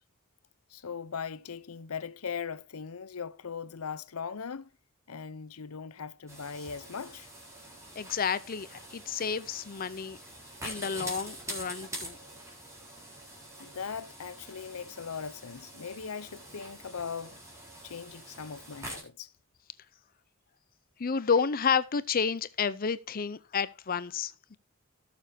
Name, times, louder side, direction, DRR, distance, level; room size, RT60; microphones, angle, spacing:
voice 1, 0.7-4.7 5.1-7.3 13.6-17.4 17.8-19.3, left 6 dB, 85° left, 0.7 m, -39 dB
sound 1, 6.3-19.0, right 1 dB, 15° right, 3.8 m, -45 dB
voice 2, 8.0-10.2 10.6-12.2 21.0-24.6, left 6 dB, 40° left, 0.5 m, -30 dB
17.5 x 7.0 x 2.7 m
head